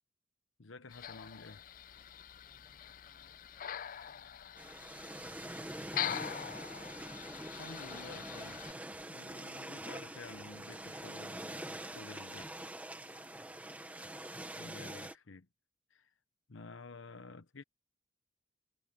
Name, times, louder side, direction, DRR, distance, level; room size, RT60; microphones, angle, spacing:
voice 1, 0.6-1.6 4.6-4.8 7.6-8.8 9.1-12.5 14.6-15.5 15.9-16.1 16.5-17.6, left 3 dB, 90° left, 1.1 m, -51 dB
sound 1, 0.9-8.7, left 10 dB, 45° left, 0.4 m, -43 dB
voice 2, 2.4-7.1 13.0-13.9, left 1 dB, 25° left, 6.8 m, -72 dB
sound 2, 4.6-15.1, right 1 dB, 10° right, 1.7 m, -45 dB
head